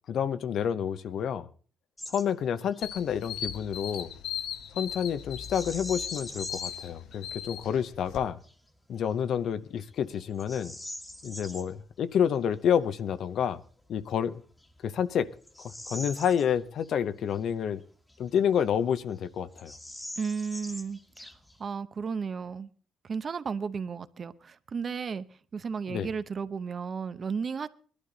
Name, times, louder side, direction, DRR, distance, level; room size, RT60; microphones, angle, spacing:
voice 1, 0.1-1.5 2.1-4.1 4.8-8.4 8.9-10.8 11.2-13.6 13.9-14.4 14.8-15.3 15.6-17.8 18.2-19.7 25.9-26.1, left 8 dB, 65° left, 0.7 m, -29 dB
Bird vocalization bird call bird song, 2.0-2.3 2.6-2.8 5.4-6.9 7.4-7.5 8.1-8.5 9.1-9.2 9.8-11.7 13.8-13.9 14.5-17.0 17.3-17.4 18.1-18.9 19.1-19.2 19.5-21.7, left 1 dB, 10° left, 1.4 m, -43 dB
sound 1, 2.8-8.2, left 9 dB, 85° left, 1.1 m, -38 dB
voice 2, 20.2-21.3 21.6-22.7 23.0-25.2 25.5-27.7, right 5 dB, 40° right, 0.7 m, -34 dB
19.0 x 12.0 x 3.9 m
cardioid pair, 100°, 0 cm